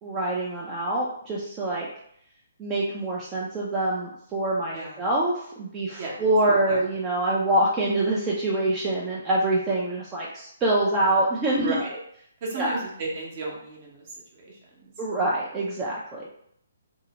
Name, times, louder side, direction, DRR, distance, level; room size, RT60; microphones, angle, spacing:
voice 1, 0.0-1.9 2.6-11.8 12.6-12.8 15.0-16.3, right 1 dB, 20° right, -5 dB, 0.4 m, -25 dB
voice 2, 11.5-12.0 12.4-14.9, right 3 dB, 40° right, -2 dB, 0.8 m, -34 dB
2.7 x 2.0 x 2.8 m, 0.69 s
hypercardioid pair, 140°, 0 cm